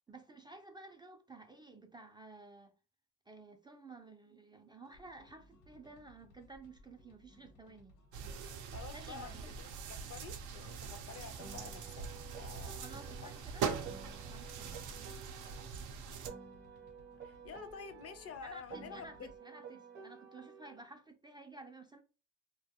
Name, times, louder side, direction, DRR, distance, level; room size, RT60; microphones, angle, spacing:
voice 1, 0.1-2.7 3.3-7.9 8.9-9.5 12.8-13.7 14.3-14.8 18.4-22.0, right 2 dB, 15° right, 0.3 m, -53 dB
sound 1, 4.8-19.4, left 2 dB, 85° left, 0.9 m, -63 dB
sound 2, 8.1-16.3, right 6 dB, 80° right, 0.5 m, -42 dB
voice 2, 8.7-12.1 12.4-12.8 13.2-13.3 17.2-19.3, left 6 dB, 50° left, 0.5 m, -49 dB
Piano, 11.4-15.8 16.2-20.8, right 5 dB, 40° right, 0.7 m, -52 dB
2.2 x 2.2 x 2.7 m
cardioid pair, 90°, 30 cm